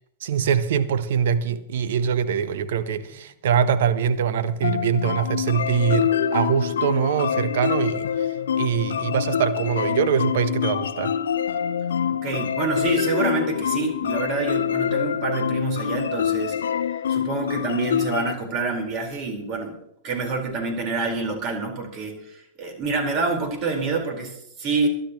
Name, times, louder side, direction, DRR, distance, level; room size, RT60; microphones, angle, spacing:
voice 1, 0.2-8.3 8.6-11.1, right 7 dB, 65° right, 1.1 m, -23 dB
sound 1, 4.6-18.3, left 8 dB, 70° left, 0.6 m, -25 dB
voice 2, 12.1-16.6 17.1-19.8 20.0-24.9, right 3 dB, 40° right, 4.7 m, -27 dB
23.0 x 11.5 x 3.1 m
figure-of-eight pair, 95°, 0 cm